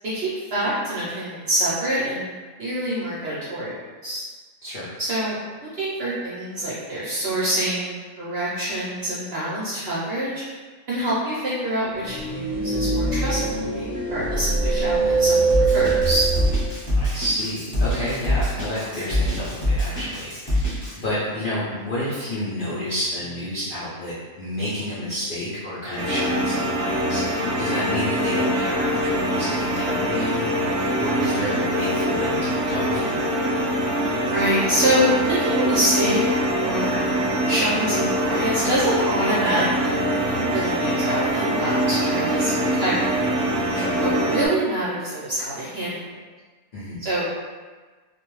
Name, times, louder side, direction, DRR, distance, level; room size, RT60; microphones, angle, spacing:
voice 1, 0.0-2.3 2.6-4.2 5.0-5.4 5.8-10.4 10.9-16.3 34.2-36.2 36.5-37.0 37.5-43.0 44.0-46.2 47.0-47.2, right 1 dB, 55° right, -8 dB, 0.7 m, -26 dB
voice 2, 4.6-5.0 17.0-33.3 43.7-44.0 46.7-47.0, left 1 dB, 85° left, -9 dB, 0.4 m, -30 dB
sound 1, 12.0-16.7, right 3 dB, ahead, 0.5 m, -22 dB
Drum kit, 15.5-20.9, left 1 dB, 25° left, 0.8 m, -24 dB
sound 2, 26.0-44.5, equal, 90° right, 1.1 m, -23 dB
2.5 x 2.2 x 3.0 m, 1.4 s
omnidirectional pair, 1.6 m